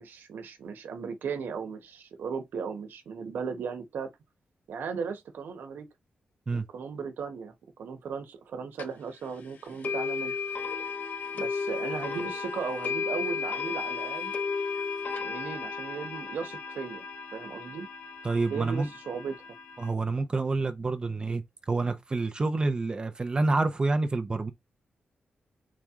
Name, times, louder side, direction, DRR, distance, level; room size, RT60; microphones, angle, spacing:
voice 1, 0.0-4.1 4.7-5.9 6.5-10.3 11.3-14.3 15.2-17.0 17.3-17.9 18.5-19.4, right 5 dB, 85° right, 1.1 m, -36 dB
sound 1, 8.8-8.9 9.8-19.9, left 5 dB, 60° left, 1.1 m, -34 dB
voice 2, 18.2-18.9 19.8-21.4 21.7-24.5, right 3 dB, 30° right, 0.7 m, -28 dB
4.9 x 3.0 x 3.6 m
wide cardioid pair, 130°, 3 cm